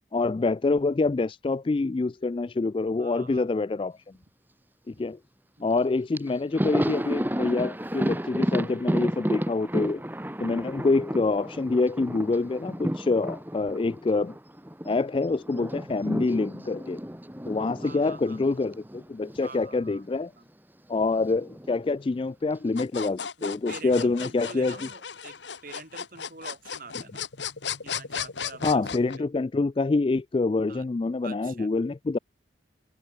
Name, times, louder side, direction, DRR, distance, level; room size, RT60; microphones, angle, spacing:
voice 1, 0.1-4.0 4.9-5.2 5.6-10.0 10.4-14.3 14.8-17.0 17.5-20.3 20.9-24.8 28.6-32.2, left 3 dB, 30° left, 0.3 m, -26 dB
voice 2, 3.0-3.5 4.9-5.1 5.6-5.9 17.8-18.4 19.4-20.0 20.4-20.5 23.4-27.3 27.8-28.9 29.2-29.3 30.7-30.9 31.2-31.7, right 3 dB, 50° right, 4.0 m, -46 dB
Thunder, 5.8-5.9 6.1-15.0 15.2-19.5 19.8-20.0 21.1-21.8, equal, 10° right, 2.3 m, -32 dB
sound 1, 22.8-29.2, left 7 dB, 85° left, 1.7 m, -35 dB
head